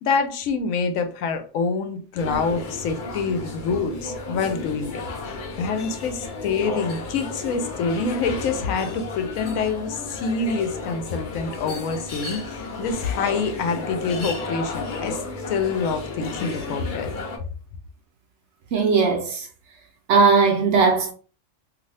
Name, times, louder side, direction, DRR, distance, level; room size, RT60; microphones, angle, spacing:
voice 1, 0.0-5.0 5.3-15.2 15.5-17.1, left 5 dB, 75° left, 1.0 m, -26 dB
sound 1, 2.2-17.4, left 3 dB, 45° left, 0.7 m, -33 dB
voice 2, 18.7-19.5 20.1-21.1, right 5 dB, 65° right, 0.8 m, -18 dB
2.7 x 2.6 x 3.2 m
omnidirectional pair, 1.4 m